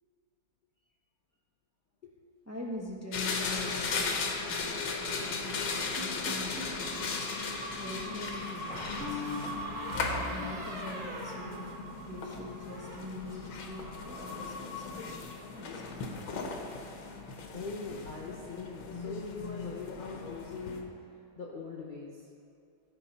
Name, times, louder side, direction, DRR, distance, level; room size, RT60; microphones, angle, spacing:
voice 1, 2.5-7.2 7.8-9.2 9.9-11.7 12.0-16.0, left 2 dB, 10° right, -3 dB, 0.9 m, -43 dB
sound 1, 3.1-20.8, left 4 dB, 80° left, 1.8 m, -37 dB
sound 2, 6.0-6.8 8.7-12.2 12.5-13.0, left 1 dB, 40° right, 3.0 m, -40 dB
sound 3, 6.8-15.7, equal, 65° right, 2.0 m, -45 dB
voice 2, 17.5-20.9 21.4-22.1, left 4 dB, 50° left, -2 dB, 0.5 m, -40 dB
16.0 x 5.5 x 4.2 m, 2.6 s
omnidirectional pair, 2.1 m